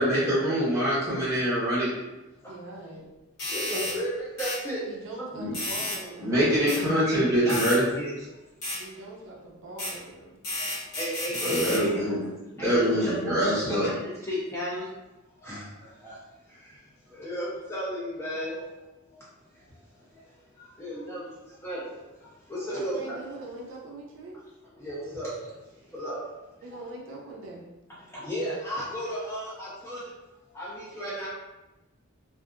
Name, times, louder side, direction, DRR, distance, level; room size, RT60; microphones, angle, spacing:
voice 1, 0.0-1.9 5.3-5.5 6.2-7.8 11.4-12.2 12.6-13.9, equal, 15° right, -10 dB, 0.9 m, -24 dB
voice 2, 2.5-3.1 4.9-7.0 8.7-10.4 22.7-24.4 26.6-27.6, right 2 dB, 60° right, -2 dB, 0.4 m, -42 dB
sound 1, 3.4-4.0 4.4-4.6 5.5-6.0 6.7-6.8 7.5-7.8 8.6-8.8 9.8-9.9 10.4-11.8, left 1 dB, 50° left, 1.2 m, -31 dB
voice 3, 3.5-4.1 4.4-4.8 5.2-5.3 7.1-8.1 11.0-12.0 12.6-13.5 13.8-14.0 14.3-14.9 15.4-15.6 16.0-16.1 17.2-18.5 20.8-21.3 21.6-21.8 22.5-23.3 24.8-25.3 25.9-26.2 28.2-30.0 30.5-31.3, equal, 10° left, -7 dB, 0.4 m, -33 dB
2.6 x 2.4 x 2.4 m, 1.0 s
head